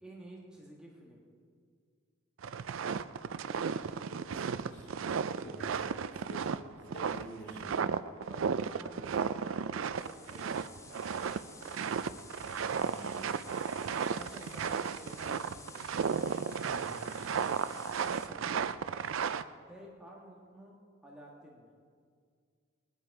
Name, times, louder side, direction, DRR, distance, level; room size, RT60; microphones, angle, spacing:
voice 1, 0.0-1.2 3.4-4.4 5.4-6.2 8.2-10.8 11.1-12.1 14.2-15.8 18.0-18.6 19.7-20.8 21.0-21.7, right 1 dB, 5° right, -4 dB, 1.6 m, -52 dB
sound 1, 2.4-19.4, right 6 dB, 85° right, 0.4 m, -34 dB
voice 2, 4.6-4.9 5.4-5.8 6.3-6.6 6.9-7.8 12.0-12.2 12.8-13.2 16.7-17.1, right 1 dB, 55° left, -2 dB, 2.5 m, -48 dB
sound 2, 9.9-18.3, left 4 dB, 15° left, 0.6 m, -53 dB
20.0 x 10.5 x 4.7 m, 2.1 s
head